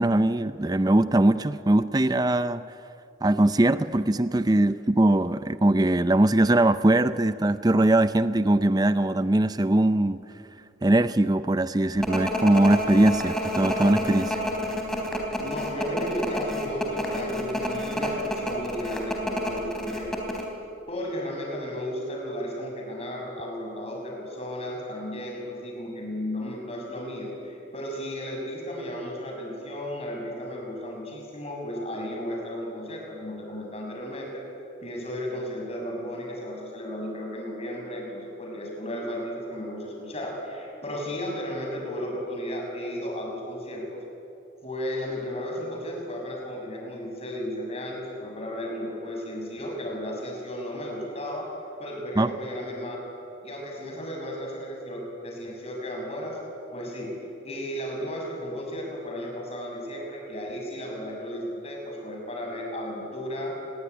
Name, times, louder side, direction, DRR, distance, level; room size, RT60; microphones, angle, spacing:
voice 1, 0.0-2.6 3.2-10.2 10.8-14.4 52.2-52.3, right 1 dB, 20° right, 13 dB, 0.5 m, -21 dB
sound 1, 12.0-20.4, left 1 dB, ahead, 3.7 m, -29 dB
voice 2, 15.4-20.1 20.9-34.4 34.8-44.0 44.6-51.5 51.8-53.0 53.4-56.4 56.7-57.1 57.4-63.5, equal, 30° left, 0 dB, 6.9 m, -34 dB
27.5 x 21.5 x 9.8 m, 2.7 s
head